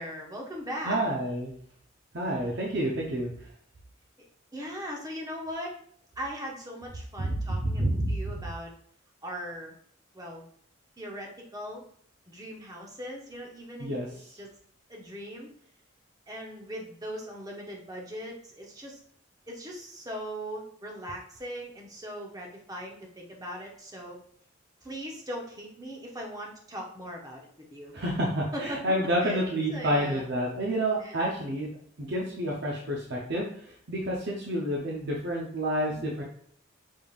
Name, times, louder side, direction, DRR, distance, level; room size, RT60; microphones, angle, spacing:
voice 1, 0.0-1.0 4.5-5.8 6.2-8.7 9.2-9.7 10.1-10.4 11.0-11.8 12.3-13.9 14.4-14.5 14.9-15.5 16.3-19.0 19.5-24.2 24.8-27.4 27.7-28.0 28.5-30.3 31.0-31.2 35.9-36.2, equal, 20° right, 0 dB, 0.8 m, -39 dB
voice 2, 0.8-1.5 2.1-3.3 7.2-8.1 13.8-14.1 27.9-31.7 32.0-33.5 33.9-36.2, right 1 dB, 60° right, -3 dB, 0.7 m, -29 dB
5.3 x 3.5 x 2.4 m, 0.63 s
head